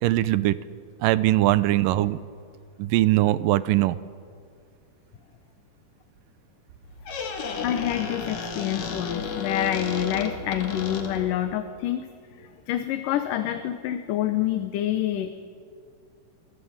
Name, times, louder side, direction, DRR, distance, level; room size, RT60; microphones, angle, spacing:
voice 1, 0.0-0.6 1.0-2.2 2.8-4.0, right 15 dB, 80° right, 16 dB, 2.4 m, -21 dB
Squeak, 6.8-11.5, left 4 dB, 60° left, 3.2 m, -32 dB
voice 2, 7.6-12.1 12.4-15.5, left 12 dB, 75° left, 8 dB, 2.5 m, -27 dB
24.5 x 18.0 x 8.8 m, 2.2 s
omnidirectional pair, 3.9 m